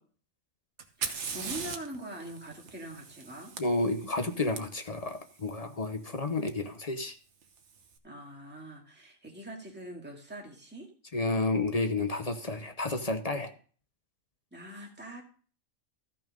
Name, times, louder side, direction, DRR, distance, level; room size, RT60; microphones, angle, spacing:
Fire, 0.8-4.6 6.5-6.6 7.4-7.8, right 6 dB, 60° right, 1.3 m, -40 dB
voice 1, 1.0-3.5 8.0-10.9 14.5-15.2, right 1 dB, 10° right, -1 dB, 2.0 m, -43 dB
voice 2, 3.6-7.1 11.1-13.5, left 2 dB, 35° left, 8 dB, 0.7 m, -31 dB
13.5 x 6.1 x 5.2 m, 0.42 s
omnidirectional pair, 1.4 m